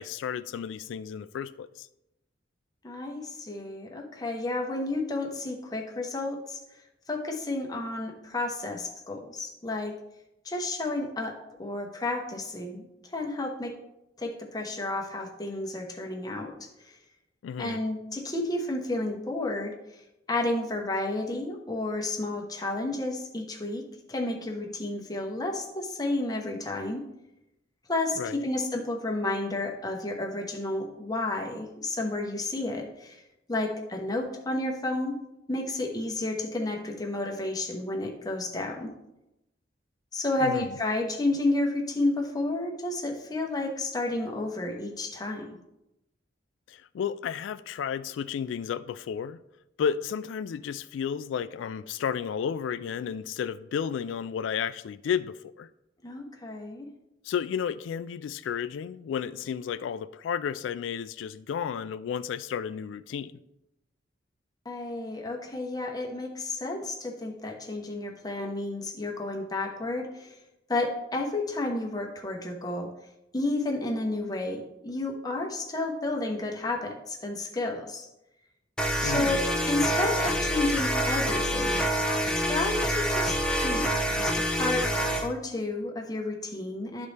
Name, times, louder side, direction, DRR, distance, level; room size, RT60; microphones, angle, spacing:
voice 1, 0.0-1.9 17.4-17.8 28.2-28.5 40.4-40.6 46.7-49.4 49.8-55.7 57.2-63.3 79.0-79.4, left 7 dB, 85° left, 0.3 m, -32 dB
voice 2, 2.8-6.6 7.1-9.9 10.4-13.7 14.2-17.0 17.6-20.0 20.3-23.8 24.1-27.0 27.9-33.2 33.5-35.1 35.5-38.9 40.1-45.5 56.0-56.9 64.6-70.4 70.7-72.9 73.3-78.1 79.0-79.4 79.7-81.8 82.3-84.9 85.2-87.1, left 2 dB, 20° left, 1.0 m, -31 dB
sound 1, 78.8-85.3, equal, 5° left, 0.7 m, -27 dB
12.0 x 4.1 x 3.3 m
head